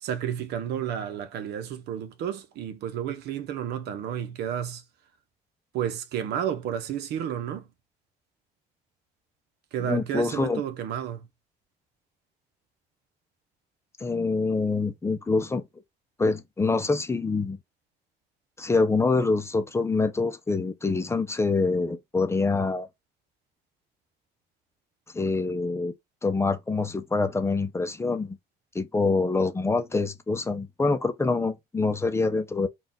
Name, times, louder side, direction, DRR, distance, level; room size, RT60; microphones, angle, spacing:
voice 1, 0.0-4.8 5.7-7.7 9.7-11.3, right 9 dB, 75° right, 0.9 m, -31 dB
voice 2, 9.9-10.6 14.0-15.6 16.2-17.6 18.6-22.9 25.1-25.9 26.2-28.4 28.7-32.7, left 3 dB, 15° left, 0.5 m, -25 dB
4.1 x 2.4 x 3.6 m
cardioid pair, 110°, 17 cm